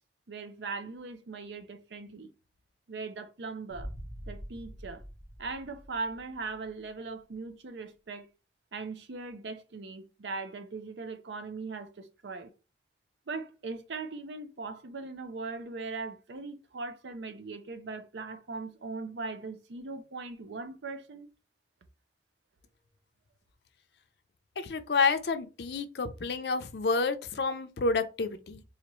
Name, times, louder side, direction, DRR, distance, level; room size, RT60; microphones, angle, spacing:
voice 1, 0.3-2.3 2.9-3.9 4.3-5.0 5.4-8.3 8.7-12.5 13.3-21.3, right 3 dB, 85° right, 0.6 m, -39 dB
Boom, 3.7-6.7, equal, 45° right, 1.1 m, -44 dB
voice 2, 24.6-28.6, left 4 dB, 65° left, 0.5 m, -29 dB
4.1 x 2.5 x 3.0 m
head